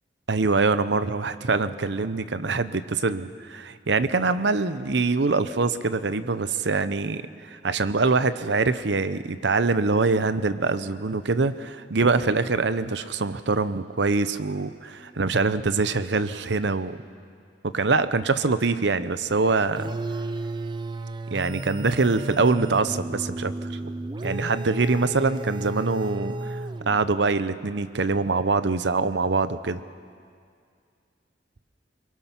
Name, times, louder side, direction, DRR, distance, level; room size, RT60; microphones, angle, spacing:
voice 1, 0.3-17.0 17.7-19.9 21.3-23.7 24.2-29.8, right 3 dB, 70° right, 13 dB, 0.8 m, -24 dB
sound 1, 19.8-27.2, right 2 dB, 25° right, 0.5 m, -33 dB
22.5 x 22.5 x 6.0 m, 2.2 s
head